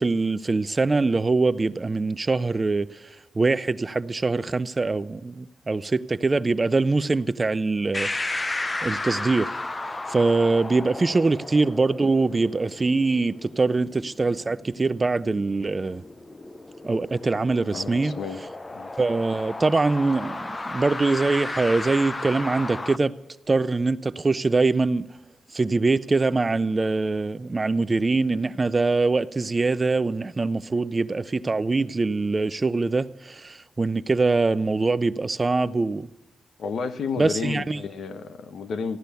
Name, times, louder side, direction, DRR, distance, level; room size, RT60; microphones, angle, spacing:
voice 1, 0.0-3.1 3.4-9.6 10.1-16.0 16.8-18.1 19.0-23.1 23.5-25.1 25.5-36.1 37.2-37.8, right 3 dB, 25° right, 0.4 m, -23 dB
sound 1, 7.9-23.0, left 2 dB, 20° left, 0.6 m, -34 dB
voice 2, 17.7-18.4 18.7-18.9 36.6-39.0, left 5 dB, 75° left, 0.9 m, -31 dB
15.5 x 11.5 x 6.9 m
wide cardioid pair, 120°, 0 cm